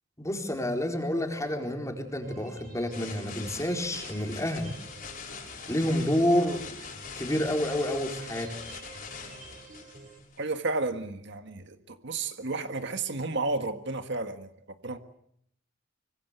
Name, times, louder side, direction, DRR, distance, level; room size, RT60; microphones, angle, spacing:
voice 1, 0.2-4.7 5.7-6.6 7.2-8.6, left 1 dB, 15° left, 4.3 m, -29 dB
sound 1, 2.2-10.2, right 3 dB, 40° right, 6.9 m, -49 dB
sound 2, 2.9-10.5, left 6 dB, 45° left, 6.3 m, -43 dB
voice 2, 10.4-14.5 14.8-15.0, right 3 dB, 60° right, 1.7 m, -32 dB
25.5 x 24.5 x 8.2 m
head